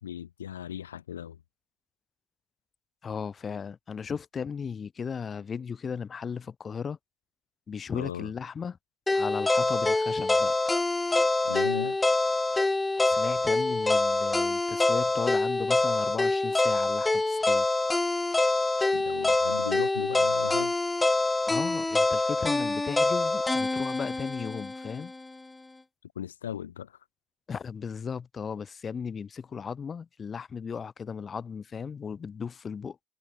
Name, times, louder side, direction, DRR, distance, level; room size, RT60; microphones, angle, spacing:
voice 1, 0.0-1.4 7.9-8.3 11.4-12.0 18.9-20.7 26.0-27.0, left 10 dB, 85° left, 1.8 m, -37 dB
voice 2, 3.0-7.0 7.7-8.8 9.1-10.6 13.1-17.7 21.5-25.1 27.5-33.0, left 6 dB, 40° left, 2.3 m, -36 dB
sound 1, 9.1-25.2, left 2 dB, 20° left, 1.7 m, -25 dB
hypercardioid pair, 50°, 0 cm